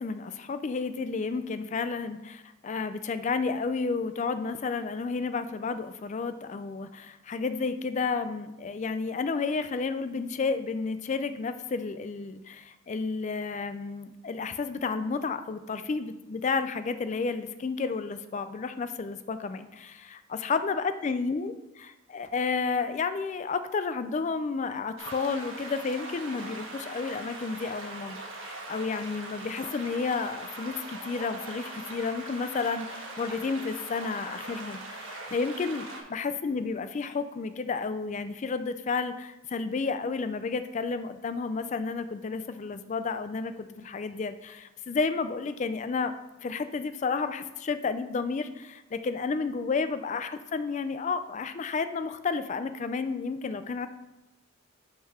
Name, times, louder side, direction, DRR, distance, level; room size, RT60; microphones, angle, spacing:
voice 1, 0.0-46.1 46.4-53.9, left 4 dB, 35° left, 11 dB, 0.3 m, -31 dB
sound 1, 25.0-36.0, right 2 dB, 70° right, 1.2 m, -41 dB
5.6 x 3.9 x 5.5 m, 0.99 s
head